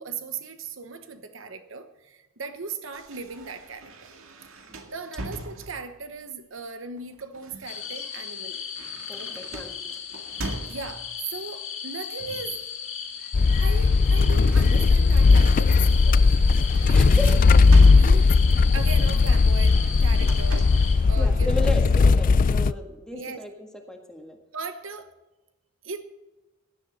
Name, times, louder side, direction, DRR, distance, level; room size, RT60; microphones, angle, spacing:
voice 1, 0.0-3.9 4.9-8.6 9.2-9.5 10.7-12.6 13.5-16.3 16.7-17.2 17.8-20.7 21.0-21.7 23.1-23.4 24.5-25.1 25.8-26.0, right 4 dB, 70° right, 9 dB, 1.1 m, -38 dB
sound 1, 2.9-6.0 7.0-11.2 12.2-12.6 12.9-15.2 15.6-15.8 16.2-18.6 19.5-21.0, right 1 dB, 90° right, 2.0 m, -40 dB
sound 2, 7.6-20.9, left 8 dB, 85° left, 4.8 m, -37 dB
voice 2, 9.1-9.7 16.9-17.3 20.9-24.4, left 1 dB, 5° left, 2 dB, 1.7 m, -35 dB
sound 3, 13.3-22.7, left 4 dB, 40° left, 0.4 m, -18 dB
16.5 x 11.0 x 4.2 m, 1.1 s
head